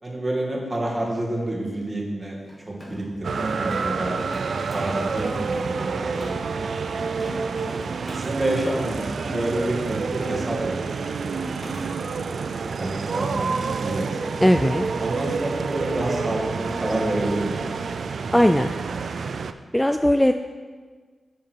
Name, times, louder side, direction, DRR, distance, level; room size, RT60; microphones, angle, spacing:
voice 1, 0.0-2.4 2.7-6.7 8.1-11.4 12.1-12.5 12.8-14.3 15.0-17.9, right 1 dB, 30° right, -2 dB, 2.1 m, -29 dB
Mechanisms, 2.4-6.5 6.9-8.4 9.0-10.4 10.7-11.0 11.3-11.9, left 1 dB, 35° left, 2.4 m, -42 dB
sound 1, 3.2-19.5, right 5 dB, 75° right, 0.4 m, -28 dB
voice 2, 14.4-14.9 18.3-18.7 19.7-20.3, equal, 10° left, 7 dB, 0.4 m, -18 dB
7.5 x 7.0 x 4.6 m, 1.5 s
cardioid pair, 50°, 0 cm